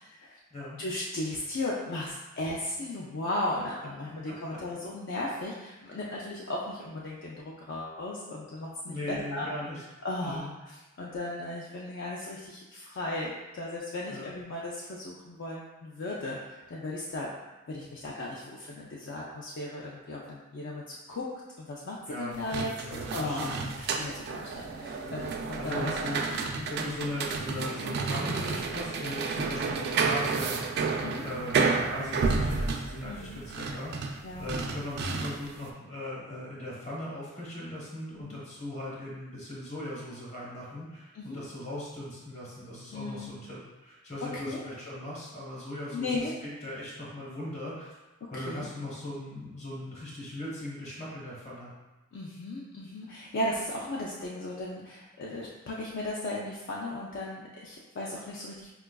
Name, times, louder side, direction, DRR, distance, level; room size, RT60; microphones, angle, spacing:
voice 1, 0.0-0.4 0.8-9.5 10.0-17.3 17.7-21.2 21.6-26.0 26.5-26.8 31.0-31.3 33.0-33.4 34.2-34.4 38.1-38.4 41.1-41.4 42.9-43.4 44.2-44.6 45.9-46.3 48.3-48.7 52.1-58.7, left 2 dB, 60° left, -4 dB, 0.4 m, -36 dB
voice 2, 8.9-9.8 10.2-10.5 14.1-14.3 22.1-23.6 25.6-26.3 26.7-30.6 30.9-48.0 48.3-51.7, left 1 dB, 35° left, -6 dB, 1.0 m, -39 dB
sound 1, 22.3-35.6, right 4 dB, 55° right, 0.3 m, -31 dB
4.5 x 2.3 x 2.2 m, 1.1 s
head